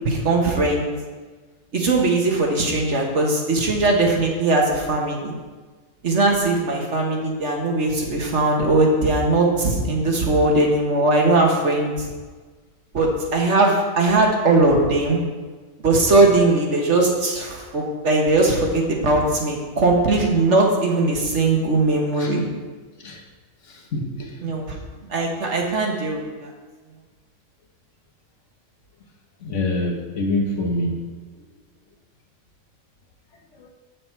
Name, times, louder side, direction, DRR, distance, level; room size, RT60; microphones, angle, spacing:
voice 1, 0.0-0.8 1.7-5.3 6.0-11.9 12.9-15.2 15.8-22.5 24.4-24.7 25.1-26.5, right 2 dB, 60° right, 0 dB, 1.5 m, -19 dB
voice 2, 23.7-24.4 29.4-31.0 33.5-33.7, left 2 dB, 60° left, 1 dB, 1.4 m, -26 dB
7.9 x 6.7 x 4.5 m, 1.4 s
omnidirectional pair, 1.4 m